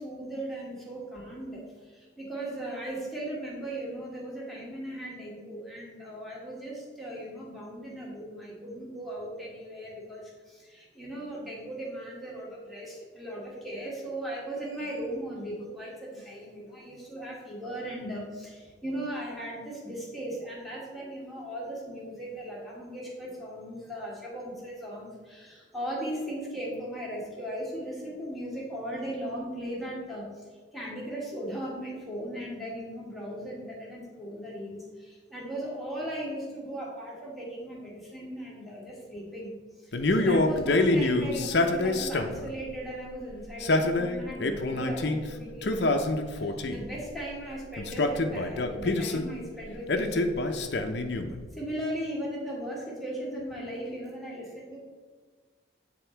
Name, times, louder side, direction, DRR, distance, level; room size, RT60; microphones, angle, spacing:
voice 1, 0.0-39.5 39.8-50.3 51.5-54.8, right 1 dB, ahead, -5 dB, 1.7 m, -38 dB
Male speech man speaking, 39.9-42.5 43.4-45.2 45.6-46.9 47.8-49.3 49.9-51.4, left 2 dB, 60° left, 0.6 m, -26 dB
9.1 x 3.7 x 4.5 m, 1.5 s
head